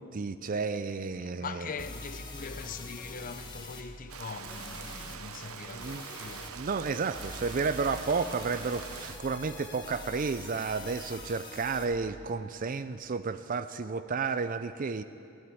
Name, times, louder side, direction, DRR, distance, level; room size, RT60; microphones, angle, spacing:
voice 1, 0.0-1.7 5.7-6.0 6.5-15.0, right 4 dB, 40° right, 0.4 m, -32 dB
sound 1, 1.1-1.2 1.8-3.8 4.5-5.2 5.8-6.5 7.1-11.8, left 2 dB, 20° left, 1.4 m, -44 dB
voice 2, 1.2-6.5, left 5 dB, 40° left, 0.6 m, -42 dB
Rain, 4.1-9.2, right 7 dB, 85° right, 0.7 m, -44 dB
14.0 x 10.5 x 9.8 m
head